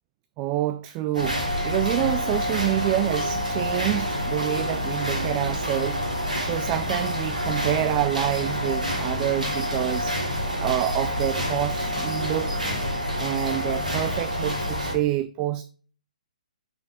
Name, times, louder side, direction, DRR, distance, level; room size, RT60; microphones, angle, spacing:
voice 1, 0.4-6.0 6.4-10.2 10.6-12.6 13.2-15.6, right 15 dB, 25° right, 0.3 m, -27 dB
sound 1, 1.1-14.9, equal, 85° right, 3.1 m, -27 dB
6.3 x 5.9 x 3.5 m
figure-of-eight pair, 130°, 4 cm